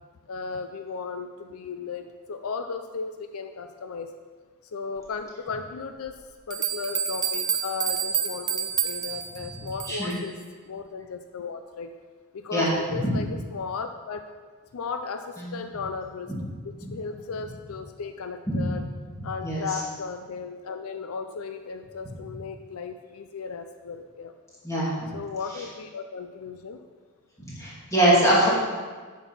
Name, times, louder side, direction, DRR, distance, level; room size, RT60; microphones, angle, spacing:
voice 1, 0.3-4.1 4.7-10.4 10.6-11.9 12.3-14.3 14.7-16.3 16.9-18.9 19.2-24.3 25.1-26.8, left 5 dB, 75° left, 8 dB, 0.5 m, -35 dB
sound 1, 6.1-6.2 6.5-10.2, right 8 dB, 20° right, 0.4 m, -29 dB
voice 2, 9.9-10.2 12.5-13.1 15.4-15.5 16.3-16.4 16.8-16.9 18.5-18.7 19.1-19.7 24.6-25.1 27.4-28.5, right 1 dB, 15° left, -7 dB, 2.4 m, -24 dB
8.4 x 6.1 x 5.5 m, 1.5 s
head